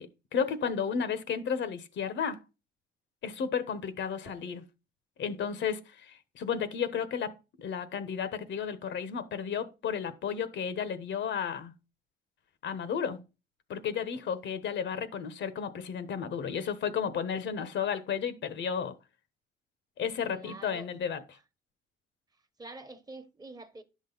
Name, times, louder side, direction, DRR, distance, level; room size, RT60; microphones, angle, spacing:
voice 1, 0.0-2.4 3.2-4.6 5.2-11.7 12.6-13.2 13.7-18.9 20.0-21.2, left 7 dB, 65° left, 1.2 m, -33 dB
voice 2, 4.2-4.6 20.2-20.9 22.6-23.8, right 2 dB, 20° right, 1.2 m, -47 dB
10.5 x 6.3 x 4.0 m
cardioid pair, 90°, 20 cm